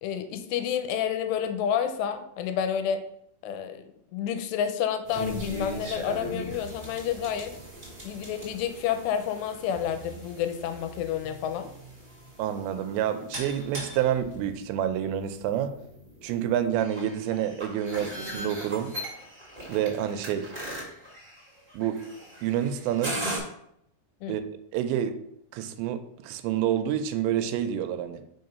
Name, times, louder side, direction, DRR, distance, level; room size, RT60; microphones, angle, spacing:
voice 1, 0.0-3.0 3.4-3.8 4.1-7.6 8.0-11.7 24.2-24.4, left 8 dB, 85° left, 8 dB, 2.7 m, -29 dB
sound 1, 5.0-23.4, equal, 40° right, 0.7 m, -39 dB
voice 2, 12.4-15.8 16.2-18.9 19.7-20.5 21.7-22.0 22.4-23.2 24.3-24.4 24.7-25.2 25.5-28.2, right 10 dB, 90° right, 9 dB, 2.8 m, -28 dB
6.1 x 3.8 x 5.4 m, 0.75 s
omnidirectional pair, 5.0 m